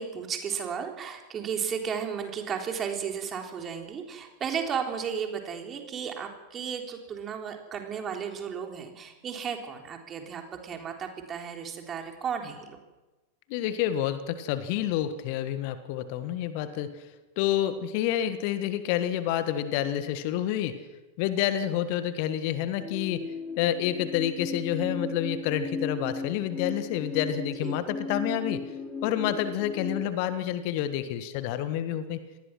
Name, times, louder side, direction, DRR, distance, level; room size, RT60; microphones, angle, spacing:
voice 1, 0.0-12.8 27.6-27.8, right 7 dB, 25° right, 3 dB, 3.7 m, -34 dB
voice 2, 13.5-17.1 17.4-20.8 21.2-23.2 23.6-28.6 29.0-32.2, left 11 dB, 45° left, 12 dB, 1.5 m, -29 dB
sound 1, 22.8-30.1, left 3 dB, 15° left, 2.7 m, -36 dB
27.0 x 19.5 x 6.2 m, 1.1 s
figure-of-eight pair, 90°, 0 cm